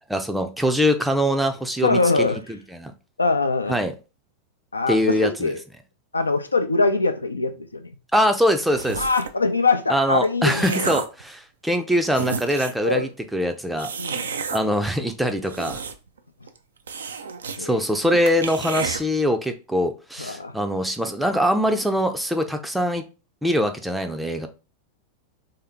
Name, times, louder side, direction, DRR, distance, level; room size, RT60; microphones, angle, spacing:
voice 1, 0.1-2.9 3.7-3.9 4.9-5.5 8.1-9.0 9.9-13.9 14.5-15.8 17.6-23.0 23.4-24.5, equal, 5° right, 0.5 m, -23 dB
voice 2, 1.8-2.4 3.2-3.8 4.7-5.6 6.1-7.9 9.0-10.9 12.8-13.1 14.0-14.3 17.6-17.7 20.2-20.5, left 3 dB, 80° left, 0.5 m, -23 dB
sound 1, 8.7-9.4 10.1-11.2 11.8-11.9 12.1-12.9 13.8-14.6 15.3-16.2 16.5-16.6 16.9-17.6 17.9-18.0 18.3-19.0, right 6 dB, 70° right, 0.4 m, -31 dB
3.4 x 2.8 x 3.5 m
figure-of-eight pair, 90°, 0 cm